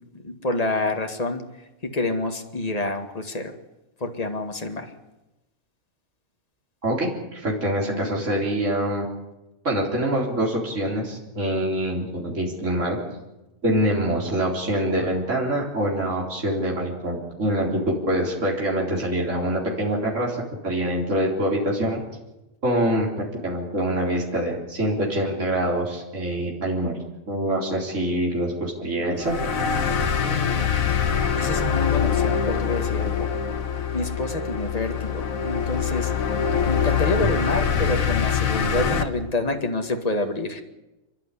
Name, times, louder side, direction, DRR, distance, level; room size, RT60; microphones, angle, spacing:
voice 1, 0.1-1.4 1.8-3.6 4.0-4.9 30.2-30.7 31.3-33.3 33.9-36.1 36.7-40.6, left 2 dB, 30° left, 5 dB, 2.0 m, -28 dB
voice 2, 6.8-9.1 9.6-13.0 13.6-20.4 20.6-22.0 22.6-27.0 27.3-29.3 37.2-37.3, right 1 dB, 65° right, -2 dB, 4.4 m, -25 dB
sound 1, 29.2-39.0, left 7 dB, 80° left, 1.8 m, -24 dB
28.5 x 11.5 x 9.9 m, 1.0 s
omnidirectional pair, 1.4 m